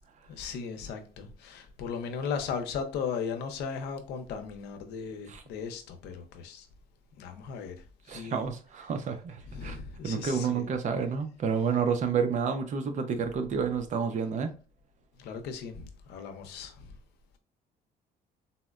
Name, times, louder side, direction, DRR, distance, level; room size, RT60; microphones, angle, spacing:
voice 1, 0.3-6.7 7.2-8.4 9.4-10.7 15.2-16.9, left 6 dB, 80° left, 0.6 m, -37 dB
voice 2, 8.1-9.8 10.0-14.5, right 6 dB, 45° right, 0.6 m, -30 dB
4.0 x 2.1 x 2.3 m
cardioid pair, 110°, 17 cm